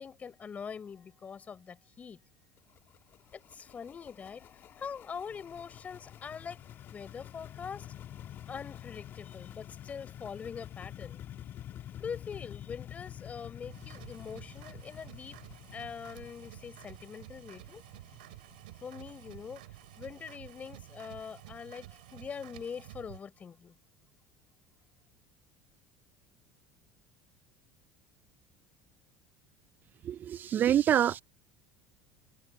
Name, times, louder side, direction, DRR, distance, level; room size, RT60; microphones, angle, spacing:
voice 1, 0.0-2.2 3.3-6.6 6.9-7.9 8.5-11.2 12.0-15.4 15.7-17.8 18.8-19.6 20.0-23.7, left 6 dB, 30° left, 4.5 m, -43 dB
sound 1, 2.6-21.3, left 11 dB, 50° left, 2.8 m, -48 dB
sound 2, 13.7-23.2, right 18 dB, 85° right, 5.2 m, -51 dB
voice 2, 30.1-31.2, right 10 dB, 40° right, 0.4 m, -26 dB
hypercardioid pair, 85°, 5 cm